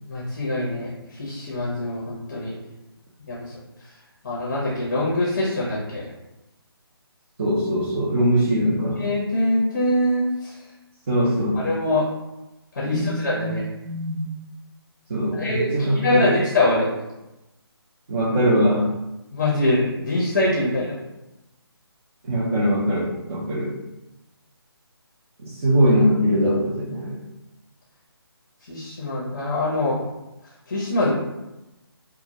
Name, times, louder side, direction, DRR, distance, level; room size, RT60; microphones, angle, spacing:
voice 1, 0.1-2.5 3.3-3.5 4.2-6.1 9.0-10.5 11.5-12.1 12.7-13.6 15.3-16.9 19.3-21.0 28.7-30.0 30.7-31.1, left 1 dB, 35° left, -6 dB, 0.6 m, -23 dB
voice 2, 7.4-9.0 11.1-11.6 12.8-13.5 13.8-14.3 15.1-16.3 18.1-18.8 22.2-23.7 25.4-27.2, equal, 35° right, -9 dB, 0.5 m, -22 dB
2.1 x 2.1 x 2.8 m, 0.97 s
figure-of-eight pair, 155°, 13 cm